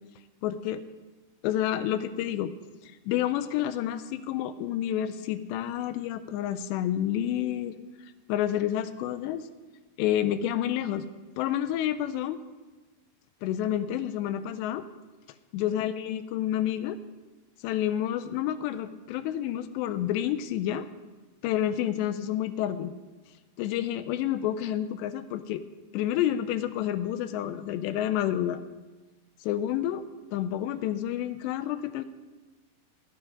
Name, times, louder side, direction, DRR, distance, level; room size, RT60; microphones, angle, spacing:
voice 1, 0.4-0.8 1.4-2.5 3.1-7.7 8.3-9.5 10.0-11.1 11.4-12.4 13.4-14.8 15.5-17.0 17.6-20.9 21.4-22.9 23.6-25.6 25.9-28.6 29.4-30.1 30.3-32.1, left 11 dB, 80° left, 12 dB, 2.7 m, -29 dB
19.5 x 8.9 x 5.0 m, 1.2 s
omnidirectional pair, 5.1 m